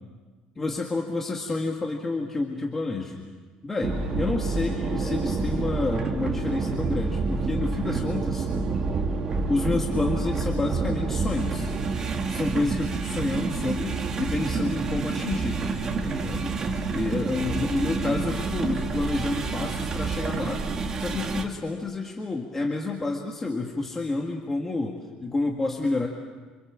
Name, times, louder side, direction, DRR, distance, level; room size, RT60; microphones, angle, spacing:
voice 1, 0.5-3.2 3.6-8.5 9.5-11.7 12.3-15.6 16.0-16.6 16.9-20.6 21.0-26.1, left 3 dB, 15° left, 0 dB, 1.8 m, -29 dB
sound 1, 3.8-21.4, right 4 dB, 25° right, 2.2 m, -28 dB
27.0 x 27.0 x 7.4 m, 1.4 s
cardioid pair, 175°, 2 cm